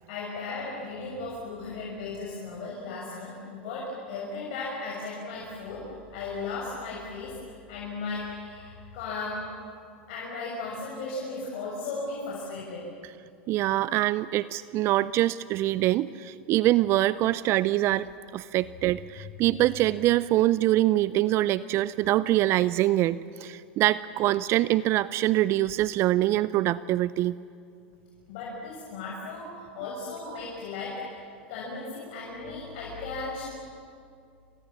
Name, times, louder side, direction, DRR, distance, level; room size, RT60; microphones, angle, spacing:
voice 1, 0.1-9.5 10.1-12.9 28.3-31.1 31.5-33.4, left 3 dB, 60° left, -4 dB, 6.9 m, -36 dB
voice 2, 13.5-18.1 18.3-27.4, right 15 dB, 45° right, 18 dB, 0.6 m, -24 dB
29.5 x 26.0 x 7.4 m, 2.4 s
hypercardioid pair, 90°, 6 cm